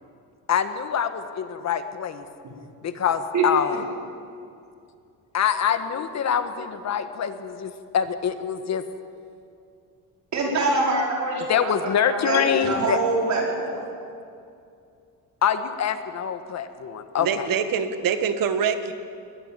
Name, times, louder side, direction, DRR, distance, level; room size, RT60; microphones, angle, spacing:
voice 1, 0.5-2.3 2.8-3.9 5.3-8.8 11.5-13.0 15.4-17.5, left 8 dB, 50° left, 10 dB, 1.5 m, -25 dB
voice 2, 10.3-11.7 12.1-13.8, right 3 dB, 50° right, -1 dB, 4.9 m, -24 dB
voice 3, 17.2-18.9, right 7 dB, 65° right, 10 dB, 1.6 m, -24 dB
20.5 x 19.5 x 7.5 m, 2.5 s
cardioid pair, 140°, 36 cm